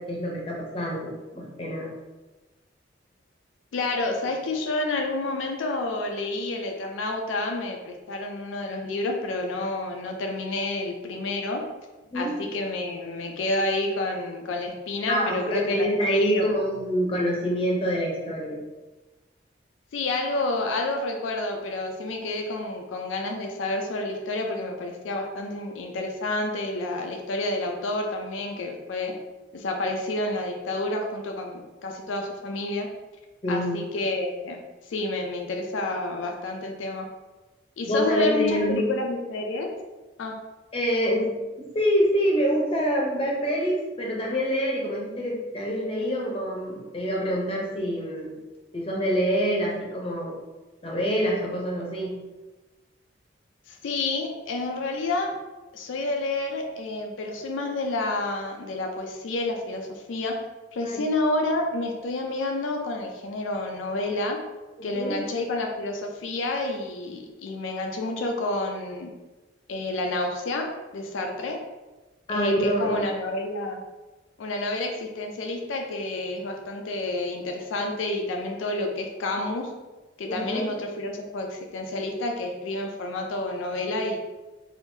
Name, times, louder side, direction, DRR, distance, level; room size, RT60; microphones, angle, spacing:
voice 1, 0.0-1.9 12.1-12.4 15.1-18.6 33.4-33.8 37.9-38.9 40.7-48.4 48.7-50.3 50.8-52.1 60.8-61.0 64.8-65.1 72.3-73.1 80.3-80.6, equal, 30° left, -2 dB, 0.6 m, -26 dB
voice 2, 3.7-11.6 12.1-16.5 19.9-29.1 29.5-32.9 33.5-37.1 37.8-39.7 40.2-40.3 53.7-55.4 55.7-60.4 60.7-64.4 64.8-69.1 69.7-71.6 72.3-73.8 74.4-79.7 80.2-84.2, left 2 dB, 85° left, 3 dB, 0.4 m, -29 dB
3.5 x 2.5 x 2.6 m, 1.2 s
head